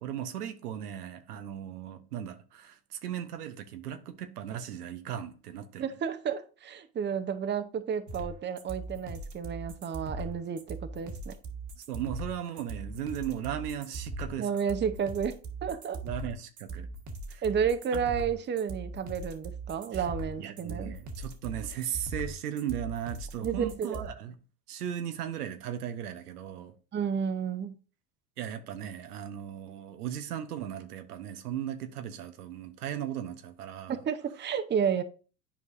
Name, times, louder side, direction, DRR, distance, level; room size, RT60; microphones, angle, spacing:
voice 1, 0.0-5.9 11.9-14.5 16.0-16.9 17.3-17.4 19.9-20.0 20.4-24.4 24.7-26.7 28.4-34.0, right 10 dB, 85° right, 1.0 m, -37 dB
voice 2, 5.8-11.3 14.4-16.0 17.4-21.0 23.4-24.0 26.9-27.8 33.9-35.0, right 7 dB, 25° right, 0.8 m, -31 dB
sound 1, 8.1-24.1, right 2 dB, 40° right, 1.6 m, -40 dB
10.5 x 4.7 x 2.6 m
hypercardioid pair, 80°, 45 cm